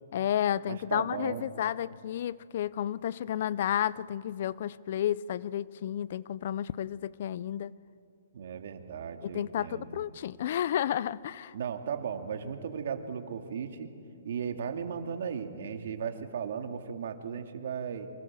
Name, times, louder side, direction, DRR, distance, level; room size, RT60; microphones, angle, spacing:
voice 1, 0.1-7.7 9.2-11.5, left 10 dB, 50° left, 0.6 m, -31 dB
voice 2, 0.6-1.5 8.3-10.0 11.5-13.9 14.2-18.1, right 7 dB, 65° right, 2.4 m, -36 dB
27.5 x 24.5 x 7.6 m
hypercardioid pair, 155°, 0 cm